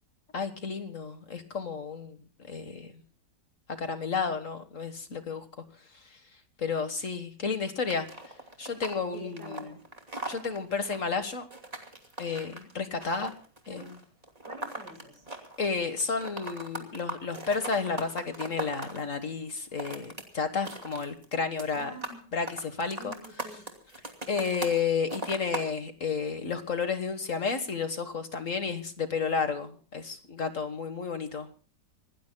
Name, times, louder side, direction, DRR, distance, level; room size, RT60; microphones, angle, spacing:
voice 1, 0.3-2.2 2.5-2.9 3.7-5.4 6.6-8.1 8.6-9.7 10.3-11.5 12.2-13.3 13.7-13.9 15.6-21.9 22.3-23.2 24.3-31.5, left 5 dB, 45° left, 9 dB, 1.8 m, -31 dB
sound 1, 7.9-15.7 16.0-19.0 19.6-20.2 20.5-21.3 21.6-22.2 22.5-24.8 25.1-25.7, right 2 dB, 20° right, 2.8 m, -39 dB
voice 2, 9.1-9.9 13.7-13.9 14.5-15.2 21.8-22.2 23.0-23.7, right 1 dB, 75° right, 5 dB, 6.7 m, -47 dB
26.0 x 19.0 x 2.3 m, 0.40 s
omnidirectional pair, 1.9 m